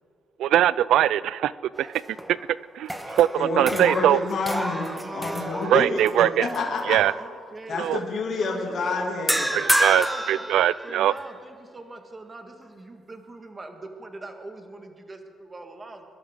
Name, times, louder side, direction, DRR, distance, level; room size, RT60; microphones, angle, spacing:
voice 1, 0.4-1.9 2.3-2.4 2.8-4.2 5.7-6.5 6.9-7.1 7.8-8.0 9.5-11.1, right 12 dB, 80° right, 20 dB, 0.3 m, -21 dB
sound 1, 1.7-2.4 2.8-6.1 6.5-6.8 9.3-11.2, right 1 dB, 5° right, 1.2 m, -28 dB
voice 2, 3.4-4.8 5.1-6.0 6.4-7.0 7.7-9.4, left 3 dB, 60° left, -1 dB, 2.4 m, -28 dB
voice 3, 4.7-8.0 8.4-9.1 9.4-10.5 10.8-16.0, right 2 dB, 25° right, 5 dB, 1.7 m, -41 dB
22.0 x 12.0 x 3.7 m, 2.2 s
cardioid pair, 90°, 0 cm